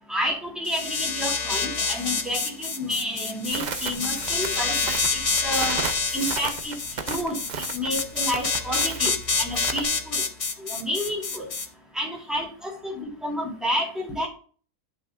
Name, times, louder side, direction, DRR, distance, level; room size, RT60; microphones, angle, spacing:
voice 1, 0.1-5.8 6.1-6.8 7.1-7.4 7.7-9.1 9.4-10.2 10.6-11.5 11.9-14.3, equal, ahead, -4 dB, 4.0 m, -30 dB
sound 1, 0.6-11.7, left 4 dB, 65° left, 0.3 m, -27 dB
Crackle, 3.5-9.8, right 6 dB, 75° right, 0.4 m, -35 dB
10.5 x 6.1 x 2.5 m, 0.41 s
omnidirectional pair, 1.8 m